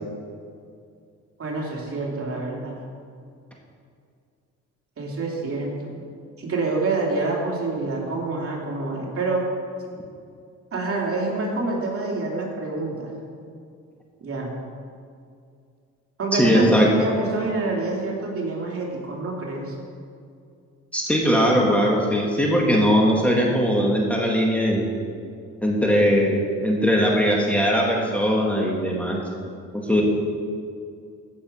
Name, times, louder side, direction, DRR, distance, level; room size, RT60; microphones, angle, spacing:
voice 1, 1.4-2.7 5.0-5.9 6.4-9.4 10.7-13.1 14.2-14.5 16.2-19.7, right 3 dB, 50° right, -2 dB, 3.0 m, -27 dB
voice 2, 16.3-16.9 20.9-24.8 25.6-29.2 29.7-30.0, equal, 5° left, -2 dB, 2.0 m, -20 dB
16.0 x 6.9 x 5.6 m, 2.3 s
cardioid pair, 90°, 30 cm